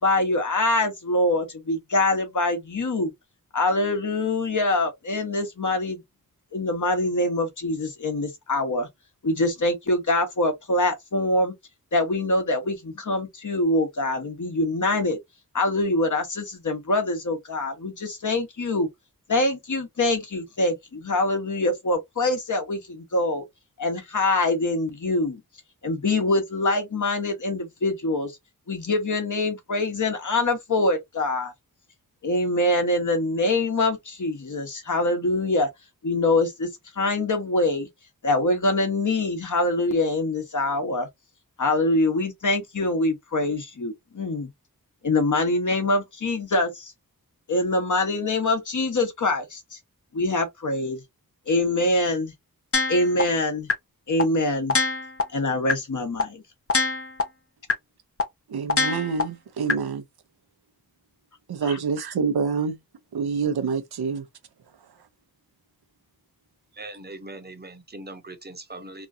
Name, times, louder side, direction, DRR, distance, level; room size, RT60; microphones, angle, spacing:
voice 1, 0.0-3.1 3.5-6.0 6.5-8.9 9.2-11.5 11.9-15.2 15.5-18.9 19.3-23.4 23.8-25.4 25.8-28.4 28.7-31.5 32.2-35.7 36.0-36.7 36.9-37.9 38.2-41.1 41.6-44.5 45.0-46.9 47.5-49.8 50.1-51.0 51.5-52.3 52.9-53.7 54.1-54.8 55.3-56.4 61.7-61.8, left 2 dB, 55° left, 1.1 m, -24 dB
sound 1, 52.7-53.2 53.7-53.8 54.2-54.3 54.7-55.2 55.7-55.8 56.2-56.3 56.7-57.2 57.7-57.8 58.2-58.3 58.7-59.2 59.7-59.8, left 4 dB, 35° left, 0.7 m, -22 dB
voice 2, 58.5-60.0 61.5-62.8 63.1-64.3, right 5 dB, 90° right, 0.7 m, -27 dB
voice 3, 66.8-69.1, right 2 dB, 25° right, 0.8 m, -40 dB
2.9 x 2.4 x 2.6 m
wide cardioid pair, 90°, 37 cm